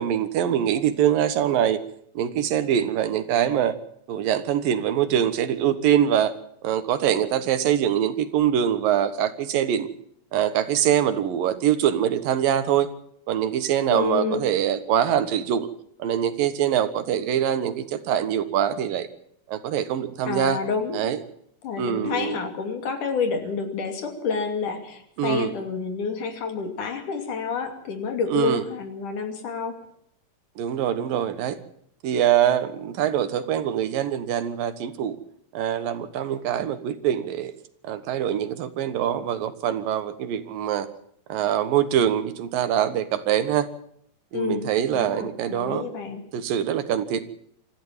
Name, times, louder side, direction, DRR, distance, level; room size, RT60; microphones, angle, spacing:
voice 1, 0.0-1.8 2.1-3.7 4.1-6.3 6.6-9.9 10.3-12.9 13.3-15.7 16.0-19.1 19.5-20.6 20.9-21.2 21.8-22.4 25.2-25.5 28.3-28.6 30.6-31.6 32.0-35.2 35.5-37.5 37.8-40.9 41.3-43.7 44.3-45.9 46.3-47.2, right 10 dB, 80° right, 12 dB, 3.1 m, -24 dB
voice 2, 13.9-14.4 20.3-21.0 21.6-29.8 44.3-46.2, left 5 dB, 65° left, 6 dB, 4.0 m, -29 dB
25.0 x 14.5 x 7.5 m, 0.70 s
omnidirectional pair, 4.0 m